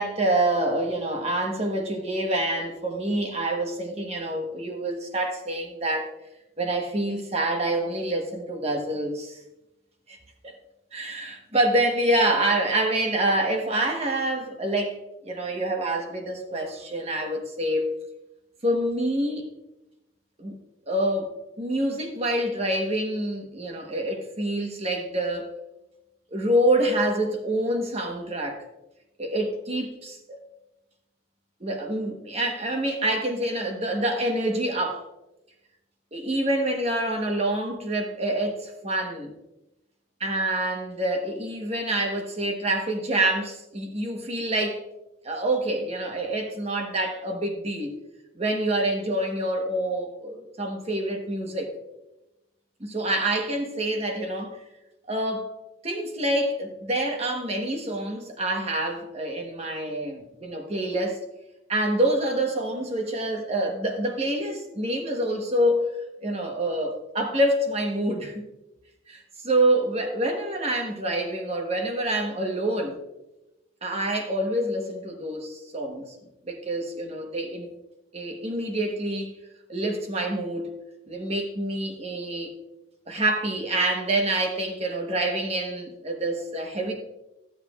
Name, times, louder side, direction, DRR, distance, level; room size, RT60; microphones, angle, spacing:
voice 1, 0.0-6.1 6.6-9.4 10.1-10.2 10.4-10.5 10.9-15.0 15.2-17.9 18.6-19.5 20.4-20.6 20.9-25.5 26.3-28.6 29.2-30.4 31.6-35.1 36.1-39.3 40.2-44.8 45.2-48.0 48.4-51.7 52.8-54.6 55.1-55.5 55.8-61.2 61.7-65.9 66.2-68.4 69.1-73.0 73.8-76.2 76.4-77.7 78.1-79.3 79.7-80.7 81.1-82.5 83.1-86.9, right 1 dB, 35° right, 3 dB, 1.2 m, -27 dB
14.0 x 7.4 x 2.4 m, 0.96 s
head